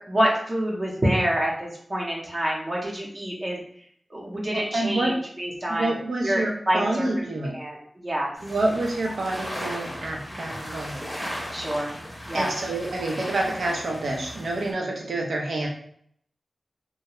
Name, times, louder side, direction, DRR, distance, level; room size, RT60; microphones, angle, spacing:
voice 1, 0.1-3.6 4.1-5.9 6.2-7.1 7.5-8.3 10.3-10.8 11.5-11.9 12.3-12.5, right 1 dB, 35° right, -3 dB, 0.6 m, -27 dB
voice 2, 4.5-5.2 5.7-7.6 8.4-11.0 12.3-15.7, right 2 dB, 80° right, 0 dB, 0.6 m, -28 dB
sound 1, 8.4-14.7, equal, ahead, 0.7 m, -36 dB
2.3 x 2.1 x 2.9 m, 0.65 s
wide cardioid pair, 90°, 0 cm